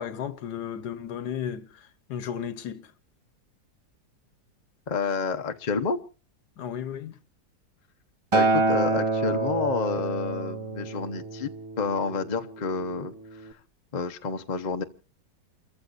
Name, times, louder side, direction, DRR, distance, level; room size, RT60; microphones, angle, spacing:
voice 1, 0.0-2.9 6.6-7.2, left 9 dB, 75° left, 1.5 m, -34 dB
voice 2, 4.9-6.0 8.3-11.5 11.8-13.1 13.4-13.6 13.9-14.8, left 5 dB, 35° left, 0.8 m, -29 dB
Acoustic guitar, 8.3-12.6 13.5-13.6, right 3 dB, 50° right, 0.3 m, -27 dB
29.5 x 14.5 x 2.6 m
omnidirectional pair, 1.8 m